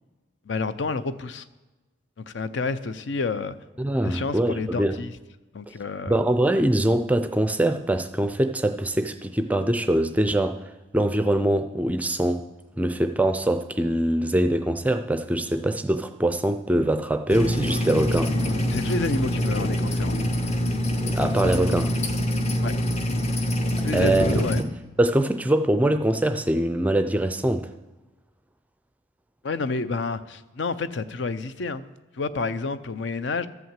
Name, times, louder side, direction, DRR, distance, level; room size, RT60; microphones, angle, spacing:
voice 1, 0.5-1.4 2.2-3.5 4.0-5.1 5.5-6.2 18.7-20.2 22.6-22.7 23.8-24.6 29.4-31.8 32.2-33.5, left 3 dB, 65° left, 13 dB, 0.5 m, -29 dB
voice 2, 3.8-5.0 6.1-10.6 10.9-12.5 12.8-18.4 21.1-21.9 23.9-24.7 25.0-27.7, right 1 dB, 10° right, 8 dB, 0.4 m, -23 dB
sound 1, 17.3-24.6, equal, 35° left, 0.8 m, -25 dB
13.0 x 5.7 x 7.4 m, 1.2 s
head